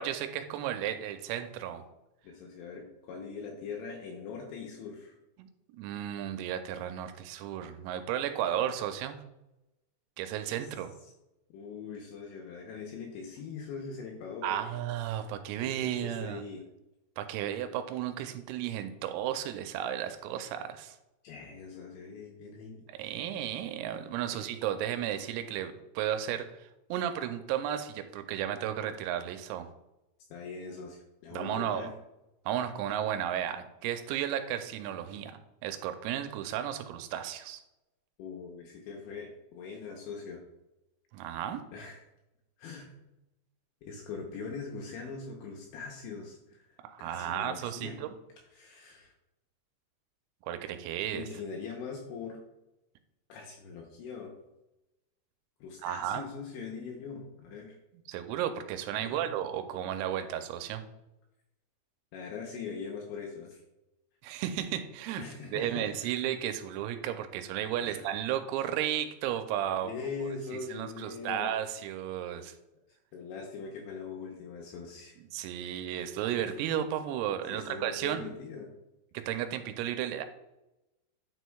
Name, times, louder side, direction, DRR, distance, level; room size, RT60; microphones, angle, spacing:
voice 1, 0.0-1.8 5.4-5.5 5.8-9.2 10.2-10.9 14.4-16.4 17.2-21.0 23.0-29.7 31.3-31.9 32.5-37.6 41.1-41.6 46.8-48.2 50.5-51.3 55.8-56.3 58.1-60.8 64.2-65.2 65.5-69.9 70.7-72.5 75.3-78.3 79.1-80.2, right 10 dB, 90° right, 8 dB, 3.3 m, -34 dB
voice 2, 2.2-5.1 10.6-10.7 11.5-14.7 15.6-16.6 21.2-22.9 24.2-24.5 30.3-31.9 38.2-40.4 41.7-42.0 42.6-43.0 43.8-48.0 48.5-49.1 51.1-52.4 53.3-54.3 55.6-57.8 59.0-59.3 62.1-63.6 65.2-66.2 67.8-68.0 69.8-71.6 73.1-75.2 75.7-75.9 76.4-76.6 77.5-78.7, left 5 dB, 80° left, 0 dB, 2.8 m, -42 dB
9.5 x 6.3 x 2.3 m, 0.93 s
omnidirectional pair, 6.0 m